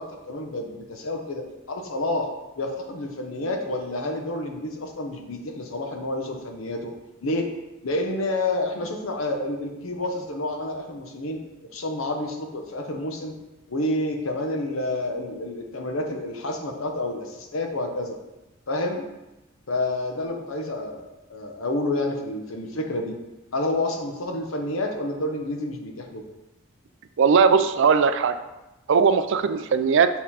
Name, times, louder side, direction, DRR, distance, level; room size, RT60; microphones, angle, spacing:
voice 1, 0.0-2.3 2.6-6.9 7.2-7.5 7.8-13.3 13.7-18.2 18.7-19.0 19.7-23.2 23.5-26.2, left 2 dB, 70° left, 3 dB, 0.9 m, -29 dB
voice 2, 27.2-28.3 28.9-30.1, right 5 dB, 60° right, 10 dB, 0.4 m, -19 dB
7.1 x 3.7 x 4.2 m, 1.0 s
head